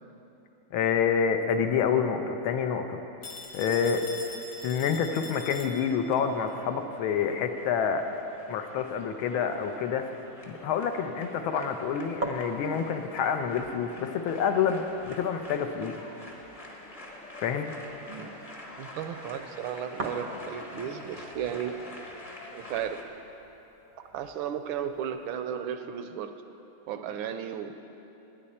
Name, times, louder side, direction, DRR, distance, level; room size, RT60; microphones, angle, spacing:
voice 1, 0.7-3.0 3.5-4.0 4.6-8.1 8.5-10.1 10.5-16.0 17.4-17.7, left 7 dB, 75° left, 6 dB, 1.5 m, -28 dB
Telephone, 3.2-6.2, left 3 dB, 55° left, 1.5 m, -42 dB
sound 1, 5.0-23.0, left 2 dB, 25° left, 0.8 m, -46 dB
sound 2, 9.5-25.3, right 2 dB, 50° right, 0.5 m, -44 dB
voice 2, 18.8-21.7 22.5-23.0 24.1-26.3 26.9-27.7, right 9 dB, 75° right, 8 dB, 1.3 m, -34 dB
18.5 x 10.0 x 4.3 m, 3.0 s
omnidirectional pair, 2.4 m